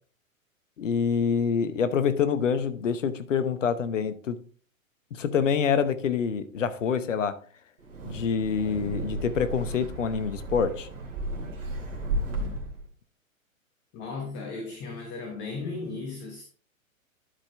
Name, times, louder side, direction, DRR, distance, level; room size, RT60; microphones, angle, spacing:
voice 1, 0.8-4.4 5.1-7.4 8.0-10.9, left 6 dB, 60° left, 1.0 m, -26 dB
Wind, 7.8-12.8, right 1 dB, 65° right, 2.6 m, -34 dB
voice 2, 13.9-16.4, left 3 dB, 25° left, 1.2 m, -36 dB
11.5 x 5.1 x 3.4 m
figure-of-eight pair, 110°, 41 cm